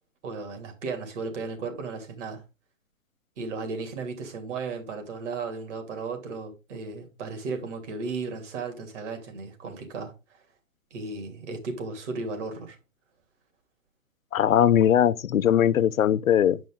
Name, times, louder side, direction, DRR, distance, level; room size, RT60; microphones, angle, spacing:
voice 1, 0.2-2.4 3.4-10.4 10.9-12.8, right 4 dB, 60° right, 3.1 m, -35 dB
voice 2, 14.3-16.6, left 10 dB, 85° left, 0.7 m, -20 dB
9.0 x 5.3 x 3.8 m
hypercardioid pair, 135°, 40 cm